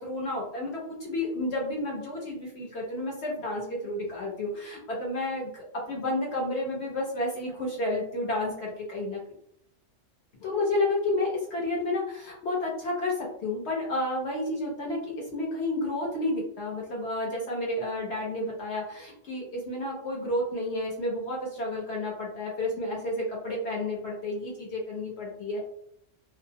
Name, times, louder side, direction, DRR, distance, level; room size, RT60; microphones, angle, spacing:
voice 1, 0.0-9.2 10.4-25.6, left 1 dB, 65° left, -3 dB, 0.9 m, -31 dB
2.5 x 2.0 x 2.7 m, 0.70 s
omnidirectional pair, 1.3 m